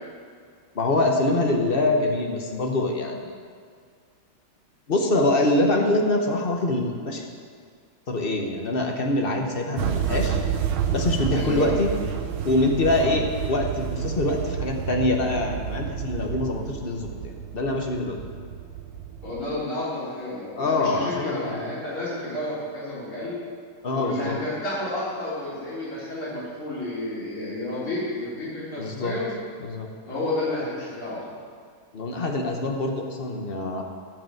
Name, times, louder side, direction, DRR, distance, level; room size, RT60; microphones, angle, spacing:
voice 1, 0.7-3.3 4.9-7.2 8.1-10.4 10.9-11.9 12.4-13.2 13.5-17.1 17.5-18.2 20.6-21.7 23.8-24.4 28.8-29.2 29.6-29.9 31.9-33.8, left 2 dB, 40° left, 2 dB, 0.9 m, -24 dB
sound 1, 9.8-19.4, right 9 dB, 90° right, 1.6 m, -30 dB
voice 2, 11.3-11.7 12.9-13.1 19.2-23.4 23.9-29.3 30.0-31.2, left 2 dB, 85° left, -10 dB, 4.6 m, -31 dB
14.0 x 5.0 x 7.7 m, 2.1 s
omnidirectional pair, 2.2 m